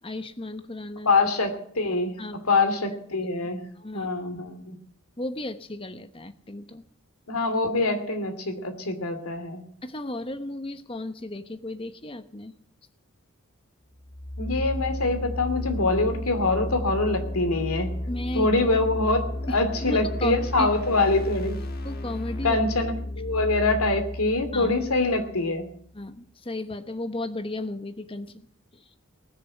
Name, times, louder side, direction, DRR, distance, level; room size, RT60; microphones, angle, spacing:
voice 1, 0.0-1.1 2.2-2.6 3.8-4.1 5.2-6.8 9.8-12.5 18.1-18.5 19.5-21.0 21.8-22.6 24.5-24.7 25.9-28.5 28.7-28.9, left 1 dB, 25° left, 9 dB, 1.0 m, -34 dB
voice 2, 1.0-2.2 2.5-3.7 3.9-4.8 7.3-9.6 14.4-17.9 18.3-21.6 22.4-22.9 23.2-25.7, left 3 dB, 85° left, 7 dB, 2.7 m, -24 dB
sound 1, 14.0-25.8, left 1 dB, 45° left, 1.5 m, -33 dB
19.5 x 6.9 x 9.7 m, 0.62 s
head